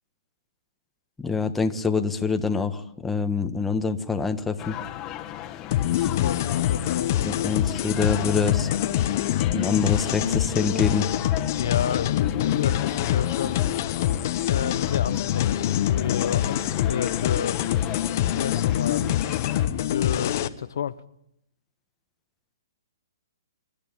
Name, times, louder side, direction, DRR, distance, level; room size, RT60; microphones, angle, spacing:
voice 1, 1.2-4.8 6.0-6.1 7.2-8.7 9.5-11.1, left 5 dB, 5° left, 1.4 m, -25 dB
sound 1, 4.6-19.7, left 12 dB, 25° left, 1.7 m, -37 dB
sound 2, 5.7-20.5, left 11 dB, 50° left, 1.2 m, -25 dB
voice 2, 6.2-7.4 11.5-13.6 14.4-17.6 18.3-19.3 19.8-21.0, left 8 dB, 70° left, 0.9 m, -31 dB
27.0 x 12.0 x 9.1 m
hypercardioid pair, 140°, 2 cm